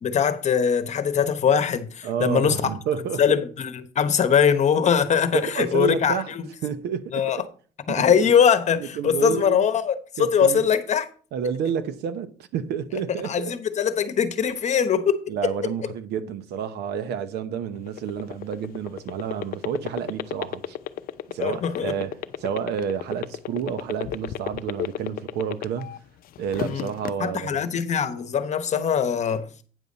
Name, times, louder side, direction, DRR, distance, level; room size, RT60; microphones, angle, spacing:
voice 1, 0.0-2.7 3.2-6.5 7.1-7.4 7.9-11.1 13.2-15.5 21.4-21.9 26.6-26.9 27.2-29.5, left 7 dB, 45° left, 1.0 m, -22 dB
voice 2, 2.0-3.4 5.3-6.3 6.6-7.3 7.9-8.2 8.8-9.7 10.2-10.7 11.3-13.5 15.3-20.8 21.3-22.1 22.4-25.9 26.4-27.6, right 7 dB, 80° right, 0.9 m, -30 dB
sound 1, 17.7-26.0 26.4-27.1, left 11 dB, 60° left, 0.6 m, -31 dB
9.2 x 7.1 x 4.0 m
cardioid pair, 110°, 17 cm